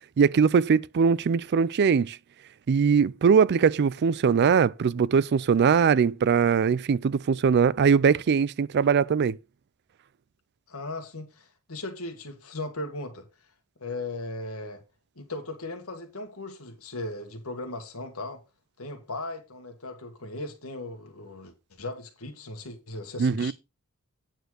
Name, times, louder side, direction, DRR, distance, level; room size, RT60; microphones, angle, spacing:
voice 1, 0.2-2.2 2.7-9.4 23.2-23.5, right 6 dB, 50° right, 0.4 m, -21 dB
voice 2, 10.7-13.2 13.8-14.8 15.2-18.4 18.8-23.5, left 2 dB, 75° left, 1.8 m, -37 dB
9.2 x 4.4 x 6.3 m
head